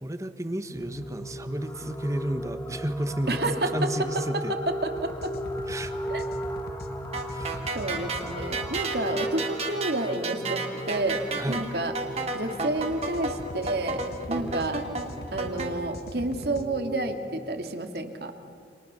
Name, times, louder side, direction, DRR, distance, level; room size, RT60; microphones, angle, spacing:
voice 1, 0.0-4.5 5.7-5.9 7.3-7.6 11.3-11.7, right 1 dB, 20° right, 10 dB, 1.2 m, -32 dB
sound 1, 0.7-17.1, equal, 15° left, 2.1 m, -37 dB
voice 2, 3.3-5.3 6.1-6.2 7.7-11.9 12.3-14.0 14.3-14.8 15.3-18.3, right 2 dB, 60° right, 6 dB, 2.2 m, -30 dB
sound 2, 5.0-8.9 12.8-16.7, left 1 dB, 55° left, 1.3 m, -42 dB
sound 3, 7.1-15.7, right 3 dB, 35° right, 2.5 m, -32 dB
29.5 x 26.5 x 6.9 m, 2.2 s
head